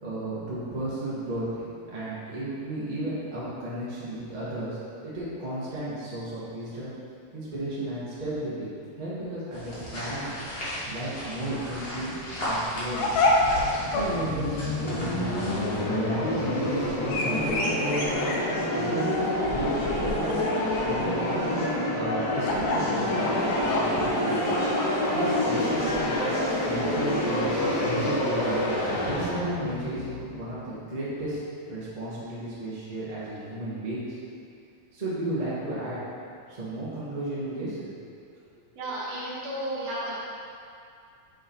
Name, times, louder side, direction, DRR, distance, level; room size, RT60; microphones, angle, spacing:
voice 1, 0.0-4.8 5.0-6.9 7.3-10.3 10.9-13.1 13.9-15.6 15.8-18.3 18.7-20.4 20.8-24.3 25.1-28.5 29.1-31.4 31.7-34.2 34.9-36.0 36.5-37.9, right 1 dB, 25° right, -10 dB, 1.0 m, -34 dB
sound 1, 9.5-15.8, equal, 40° left, 0.8 m, -36 dB
sound 2, 12.6-29.3, left 2 dB, 80° left, 2.3 m, -31 dB
sound 3, 13.2-31.0, left 1 dB, 60° left, 2.1 m, -28 dB
voice 2, 38.8-40.1, right 1 dB, 75° right, -9 dB, 3.0 m, -33 dB
7.9 x 5.1 x 3.1 m, 2.4 s
omnidirectional pair, 3.6 m